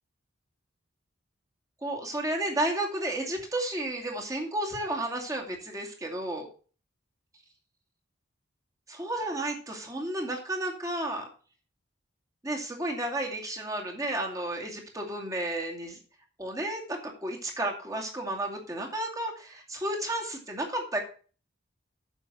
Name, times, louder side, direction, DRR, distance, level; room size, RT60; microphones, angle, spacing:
voice 1, 1.8-6.5 8.9-11.3 12.4-16.0 16.4-21.0, right 1 dB, 15° right, 1 dB, 2.4 m, -32 dB
9.2 x 7.1 x 6.0 m, 0.39 s
head